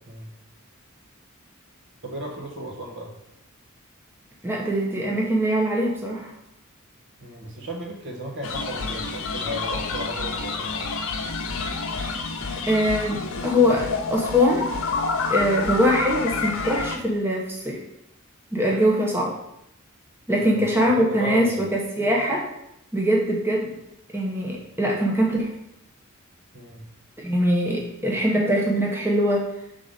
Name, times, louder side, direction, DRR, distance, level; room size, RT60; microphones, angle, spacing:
voice 1, 2.0-3.1 7.2-10.9 20.5-21.7 26.5-26.8, right 1 dB, 55° right, 0 dB, 1.3 m, -35 dB
voice 2, 4.4-6.3 12.7-14.7 15.3-17.8 18.5-19.4 20.3-22.5 22.9-23.7 24.1-25.5 27.2-29.5, equal, 10° right, -2 dB, 0.8 m, -22 dB
sound 1, 8.4-17.0, left 4 dB, 70° left, 0.7 m, -28 dB
5.6 x 3.9 x 5.0 m, 0.81 s
head